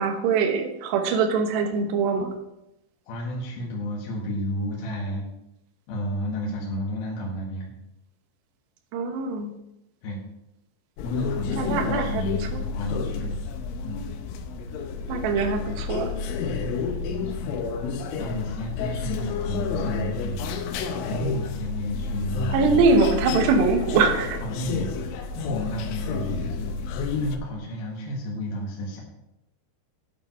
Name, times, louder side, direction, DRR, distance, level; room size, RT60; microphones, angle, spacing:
voice 1, 0.0-2.3 8.9-9.5 11.6-12.2 15.1-16.1 22.5-24.4, right 4 dB, 70° right, 5 dB, 3.0 m, -23 dB
voice 2, 3.1-5.3 5.9-7.7 10.0-10.2 11.0-13.4 13.8-14.0 16.6-17.7 18.0-22.8 24.4-29.0, equal, 60° left, -4 dB, 3.3 m, -32 dB
sound 1, 11.0-27.4, left 5 dB, 85° left, 3.2 m, -30 dB
9.6 x 8.6 x 4.6 m, 0.89 s
omnidirectional pair, 5.5 m